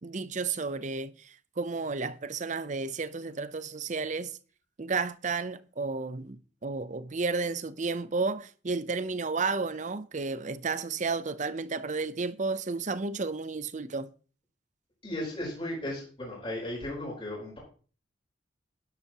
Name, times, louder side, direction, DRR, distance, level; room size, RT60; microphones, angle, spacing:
voice 1, 0.0-4.3 4.8-14.1, right 4 dB, 40° right, 0.7 m, -32 dB
voice 2, 15.0-17.6, left 1 dB, 30° left, 4.4 m, -35 dB
12.0 x 11.5 x 3.0 m
head